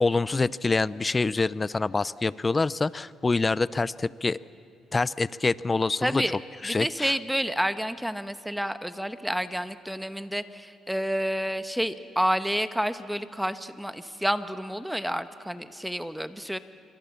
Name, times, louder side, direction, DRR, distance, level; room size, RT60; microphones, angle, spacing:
voice 1, 0.0-4.4 4.9-6.2 6.6-7.1, left 3 dB, 25° left, 19 dB, 0.5 m, -26 dB
voice 2, 6.0-6.4 6.6-16.6, equal, ahead, 11 dB, 1.1 m, -29 dB
27.0 x 24.0 x 7.2 m, 2.4 s
cardioid pair, 90°, 0 cm